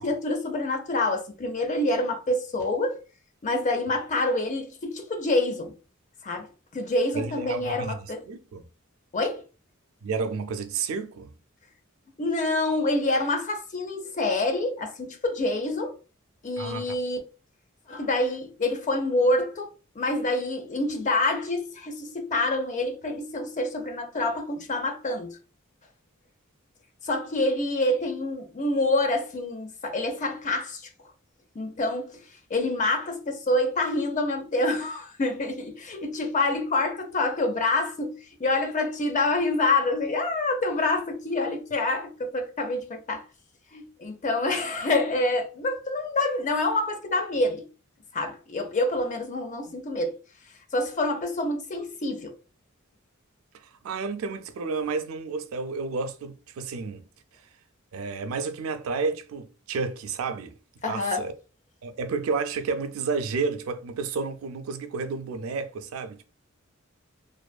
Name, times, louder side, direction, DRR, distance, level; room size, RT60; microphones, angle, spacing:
voice 1, 0.0-3.0 3.4-5.7 6.2-6.5 6.7-8.2 9.1-9.4 12.2-15.9 16.4-17.2 17.9-19.7 20.0-25.4 27.0-30.9 31.5-43.2 43.7-47.7 48.1-50.2 50.7-52.3 60.8-61.3, left 2 dB, 35° left, 0.5 m, -27 dB
voice 2, 7.1-8.0 8.3-8.7 10.0-11.3 16.6-17.0 53.5-57.0 57.9-60.5 60.9-61.3 61.8-66.2, right 4 dB, 75° right, 0.3 m, -31 dB
2.5 x 2.3 x 2.2 m
head